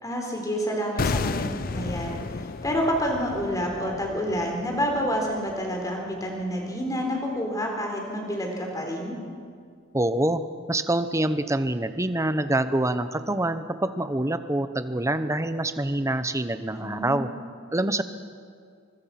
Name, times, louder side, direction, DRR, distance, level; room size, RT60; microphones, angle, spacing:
voice 1, 0.0-2.2 2.6-9.2 16.7-17.3, equal, 20° left, 1 dB, 3.9 m, -28 dB
sound 1, 1.0-6.0 6.3-6.4, left 4 dB, 45° left, 0.6 m, -33 dB
voice 2, 9.9-10.4 10.7-17.3 17.7-18.0, right 1 dB, 15° right, 11 dB, 0.8 m, -26 dB
24.0 x 22.0 x 5.9 m, 2.2 s
head